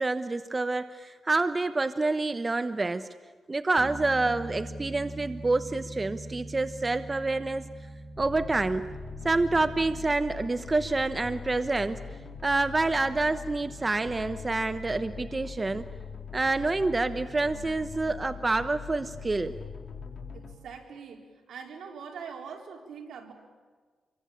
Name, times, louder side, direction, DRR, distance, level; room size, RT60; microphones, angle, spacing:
voice 1, 0.0-3.1 3.5-7.6 8.2-8.9 9.2-12.0 12.4-15.8 16.3-19.5, right 3 dB, 30° right, 11 dB, 1.0 m, -27 dB
Bass guitar, 3.8-10.0, right 1 dB, 15° left, 4.6 m, -42 dB
sound 1, 8.1-20.5, left 5 dB, 55° left, 4.1 m, -42 dB
voice 2, 20.3-23.3, right 6 dB, 85° right, 2 dB, 4.1 m, -43 dB
27.5 x 24.0 x 8.8 m, 1.4 s
cardioid pair, 75°, 0 cm